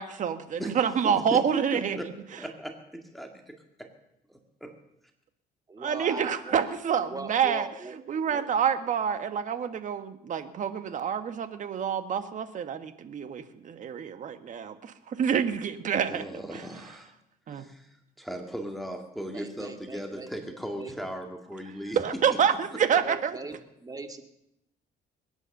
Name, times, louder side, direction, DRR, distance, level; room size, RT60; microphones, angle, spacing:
voice 1, 0.0-2.1 5.8-7.7 8.1-16.2 16.5-16.6 17.5-17.7 21.9-23.3, right 7 dB, 50° right, 10 dB, 1.4 m, -27 dB
voice 2, 1.0-1.4 1.7-2.1 2.4-3.9 4.3-4.7 16.1-17.1 17.5-22.0 22.3-22.4 22.9-23.0, equal, ahead, 3 dB, 2.0 m, -38 dB
voice 3, 5.7-6.6 7.1-8.0 8.2-8.4 19.3-20.9 23.0-24.2, right 3 dB, 20° right, 5 dB, 2.0 m, -40 dB
22.0 x 9.9 x 6.7 m, 0.81 s
cardioid pair, 110°, 17 cm